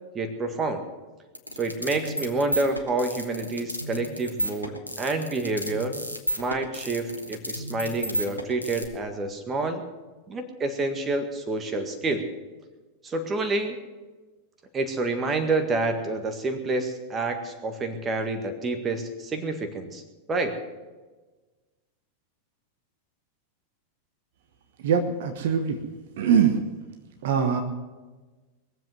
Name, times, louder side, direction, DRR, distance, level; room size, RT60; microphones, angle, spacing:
voice 1, 0.1-0.8 1.6-6.0 6.4-9.8 10.3-12.3 13.0-13.8 14.7-20.0 20.3-20.6, right 2 dB, 20° right, 7 dB, 1.8 m, -28 dB
sound 1, 1.3-8.8, right 1 dB, 90° right, 1.4 m, -32 dB
voice 2, 24.8-25.8 26.2-26.6 27.2-27.6, right 7 dB, 55° right, 6 dB, 1.2 m, -22 dB
21.5 x 7.7 x 7.9 m, 1.3 s
figure-of-eight pair, 90°, 0 cm